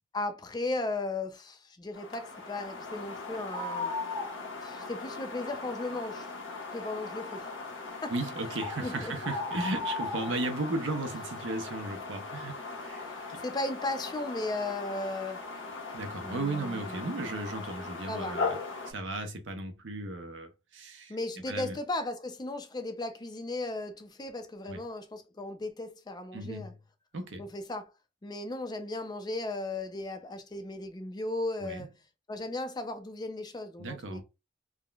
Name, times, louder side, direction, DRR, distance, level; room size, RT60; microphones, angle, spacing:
voice 1, 0.1-3.9 4.6-6.3 6.7-7.5 8.0-8.1 8.8-9.1 13.0-15.4 16.2-17.3 18.1-18.4 21.1-26.7 27.4-27.9 28.2-31.9 32.3-34.2, left 2 dB, 20° left, 0.4 m, -36 dB
sound 1, 1.9-18.9, left 3 dB, 85° left, 0.8 m, -38 dB
voice 2, 8.1-12.5 12.8-13.4 15.9-18.6 18.9-21.2 21.5-21.8 24.7-24.8 26.3-26.7 27.1-27.4 31.6-31.9 33.8-34.2, right 2 dB, 75° right, 0.7 m, -35 dB
3.5 x 2.1 x 2.3 m
head